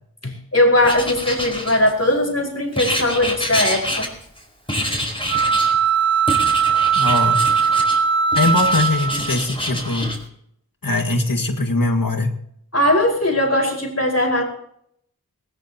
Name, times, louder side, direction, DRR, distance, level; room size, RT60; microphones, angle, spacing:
voice 1, 0.2-4.1 12.7-14.5, left 1 dB, 45° left, 0 dB, 5.1 m, -19 dB
Writing, 0.8-2.2 2.8-4.4 4.7-5.8 6.3-8.0 8.3-10.2, equal, 15° left, 5.0 m, -27 dB
sound 1, 5.3-9.4, right 6 dB, 85° right, 2.2 m, -19 dB
voice 2, 6.9-7.4 8.4-10.1 10.8-12.3, left 2 dB, 70° left, 5 dB, 2.1 m, -21 dB
19.5 x 19.0 x 3.0 m, 0.71 s
wide cardioid pair, 55°, 35 cm